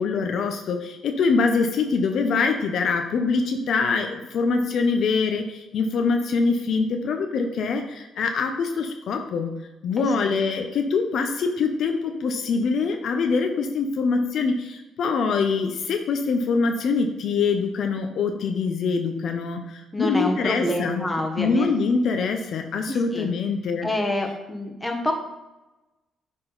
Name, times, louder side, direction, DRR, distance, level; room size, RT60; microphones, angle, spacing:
voice 1, 0.0-9.5 9.8-21.1 21.4-23.9, left 4 dB, 70° left, 5 dB, 0.7 m, -24 dB
voice 2, 10.0-10.3 19.9-21.7 23.1-23.3 23.8-25.1, left 1 dB, 15° left, 2 dB, 1.3 m, -27 dB
9.9 x 3.8 x 4.0 m, 1.0 s
cardioid pair, 90°, 0 cm